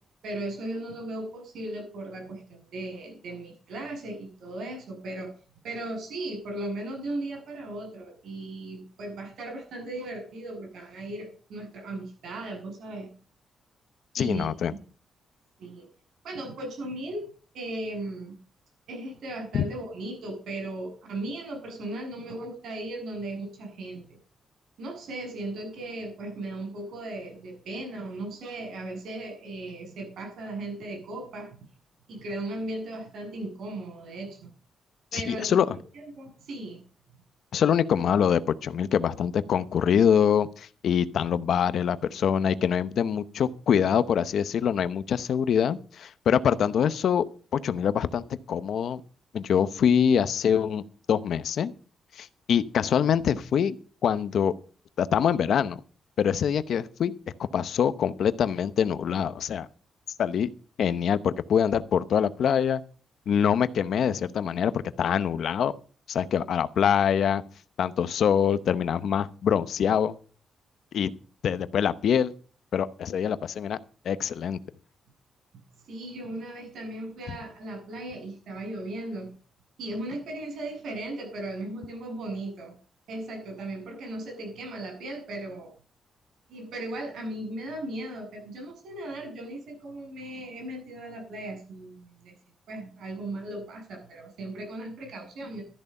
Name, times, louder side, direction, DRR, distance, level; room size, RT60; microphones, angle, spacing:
voice 1, 0.2-5.3 5.6-13.1 14.2-14.8 15.6-15.9 16.2-18.3 18.9-24.2 24.8-31.6 32.1-34.4 35.1-35.5 35.9-36.8 75.9-79.3 79.8-82.7 83.1-85.7 86.5-92.3 92.7-95.6, right 1 dB, 65° right, 3 dB, 7.5 m, -37 dB
voice 2, 14.1-14.7 19.5-19.6 35.1-35.8 37.5-47.2 47.5-48.2 48.5-49.0 49.3-51.7 52.2-53.8 54.0-54.5 55.0-55.8 56.2-57.1 57.5-59.7 60.2-60.5 60.8-62.8 63.3-65.7 66.1-67.4 67.8-70.2 70.9-71.1 71.4-72.3 72.7-73.8 74.0-74.6, left 8 dB, 60° left, 14 dB, 0.8 m, -24 dB
13.5 x 11.0 x 5.4 m, 0.40 s
wide cardioid pair, 170°, 0 cm